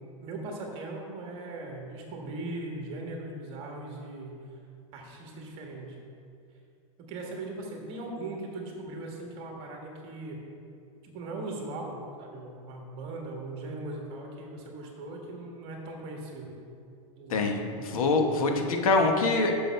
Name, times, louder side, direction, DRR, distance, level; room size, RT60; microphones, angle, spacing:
voice 1, 0.2-4.4 4.9-6.0 7.0-10.4 11.0-16.6 17.2-17.5, right 2 dB, 30° right, 0 dB, 1.4 m, -39 dB
voice 2, 17.3-19.5, left 3 dB, 85° left, 3 dB, 1.2 m, -24 dB
6.8 x 6.2 x 5.7 m, 2.5 s
supercardioid pair, 160°, 18 cm